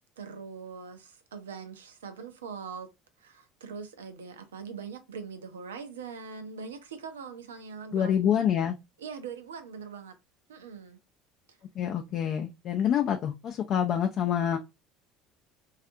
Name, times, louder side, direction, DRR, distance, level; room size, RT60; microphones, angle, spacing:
voice 1, 0.2-2.9 3.2-8.4 9.0-10.2 10.5-11.0 11.5-11.6, right 6 dB, 80° right, 0.4 m, -42 dB
voice 2, 7.9-8.7 11.8-14.6, left 9 dB, 50° left, 0.3 m, -26 dB
2.4 x 2.4 x 2.6 m
hypercardioid pair, 65°, 0 cm